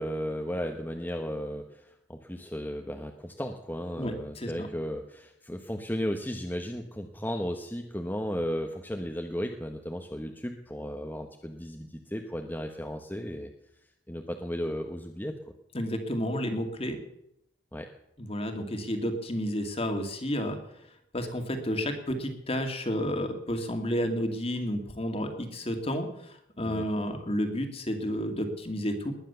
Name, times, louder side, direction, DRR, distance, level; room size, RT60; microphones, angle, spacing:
voice 1, 0.0-13.5 14.1-15.3 17.7-17.9 26.6-26.9, equal, 10° left, 4 dB, 1.1 m, -35 dB
voice 2, 4.0-4.7 15.7-17.0 18.2-20.6 21.1-29.1, equal, 35° left, 6 dB, 2.3 m, -31 dB
20.0 x 10.0 x 6.9 m, 0.79 s
head